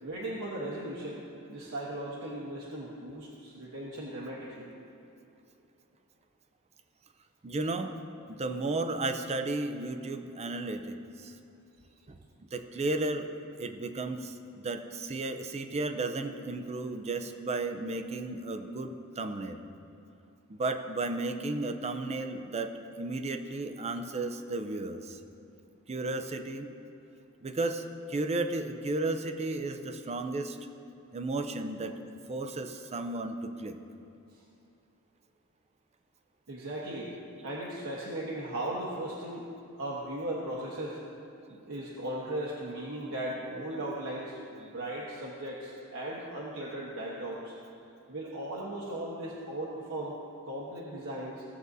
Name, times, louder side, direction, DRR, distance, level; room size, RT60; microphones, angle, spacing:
voice 1, 0.0-1.2 1.5-4.7 36.5-37.1 37.4-39.5 39.8-41.0 41.5-47.5 48.1-50.2 50.4-51.4, right 1 dB, 70° right, -5 dB, 1.1 m, -37 dB
voice 2, 7.4-7.9 8.3-11.3 12.1-12.2 12.5-13.3 13.6-19.7 20.5-22.7 23.0-25.2 25.9-26.7 27.4-30.6 31.1-31.9 32.3-33.8, right 2 dB, 30° right, 7 dB, 0.5 m, -34 dB
16.0 x 7.6 x 2.7 m, 2.7 s
head